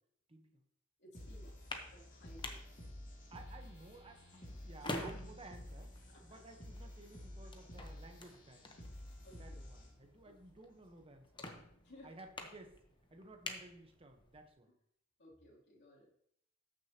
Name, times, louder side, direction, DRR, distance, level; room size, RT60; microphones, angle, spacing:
voice 1, 0.3-0.6 3.3-5.9 6.2-8.8 9.4-11.6 12.0-12.8 13.1-14.7, right 2 dB, 30° right, 6 dB, 1.0 m, -56 dB
voice 2, 1.0-1.6 1.9-2.7 4.8-5.2 6.1-6.4 9.2-9.7 10.2-10.3 11.8-12.1 14.7-14.8 15.2-16.1, right 1 dB, 60° left, -5 dB, 2.9 m, -54 dB
sound 1, 1.1-10.1, left 1 dB, 40° left, 2.4 m, -51 dB
sound 2, 1.4-14.5, left 2 dB, 25° left, 0.9 m, -50 dB
14.0 x 6.3 x 2.9 m, 0.71 s
head